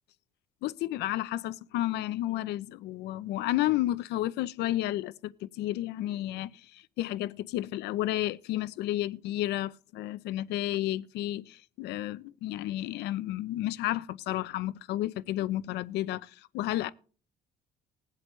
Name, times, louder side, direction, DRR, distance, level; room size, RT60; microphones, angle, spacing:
voice 1, 0.6-16.9, left 15 dB, 80° left, 0.6 m, -32 dB
20.5 x 7.7 x 3.2 m
cardioid pair, 110°, 17 cm